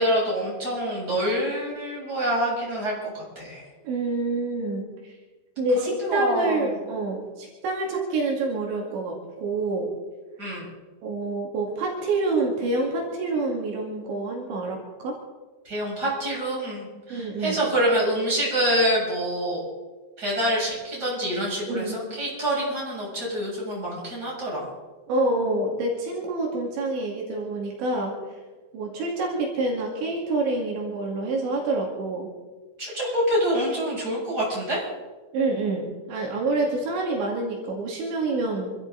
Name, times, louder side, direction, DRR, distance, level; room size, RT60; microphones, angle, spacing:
voice 1, 0.0-3.6 6.0-6.7 10.4-10.6 15.6-19.6 20.2-24.7 32.8-34.8, equal, 20° right, -5 dB, 8.0 m, -26 dB
voice 2, 3.8-5.1 5.6-9.9 11.0-15.2 17.1-17.6 21.7-22.0 25.1-28.2 28.7-32.3 35.3-38.7, right 2 dB, 80° right, -1 dB, 4.6 m, -27 dB
27.5 x 13.0 x 4.0 m, 1.3 s
omnidirectional pair, 5.2 m